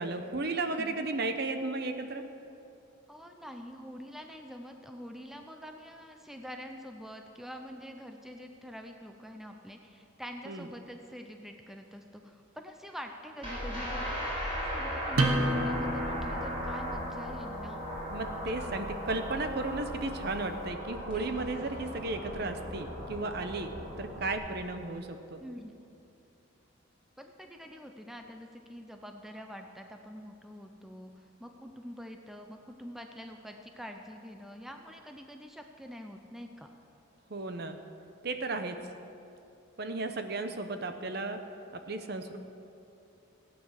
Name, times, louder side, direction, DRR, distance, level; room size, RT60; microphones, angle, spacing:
voice 1, 0.0-2.2 10.5-10.7 18.1-23.7 24.0-25.4 37.3-37.8 38.2-38.8 39.8-41.4 41.7-42.4, right 3 dB, 50° right, 7 dB, 0.8 m, -34 dB
voice 2, 3.1-17.8 18.6-18.8 21.1-21.2 25.4-25.7 27.2-36.7, equal, ahead, 4 dB, 0.6 m, -45 dB
sound 1, 13.4-24.4, equal, 30° right, 4.1 m, -37 dB
sound 2, 15.1-20.5, right 1 dB, 90° right, 1.3 m, -34 dB
15.5 x 8.8 x 6.5 m, 2.7 s
head